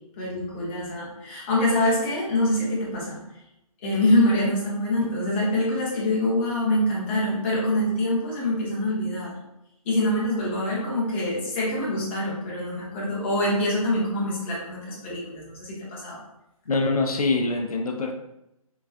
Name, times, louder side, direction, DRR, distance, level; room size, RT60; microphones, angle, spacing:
voice 1, 0.2-3.2 3.8-9.3 9.9-16.2, left 1 dB, 20° left, -5 dB, 0.7 m, -25 dB
voice 2, 16.7-18.1, left 3 dB, 80° left, 4 dB, 0.5 m, -24 dB
3.8 x 2.3 x 2.4 m, 0.87 s
figure-of-eight pair, 150°, 19 cm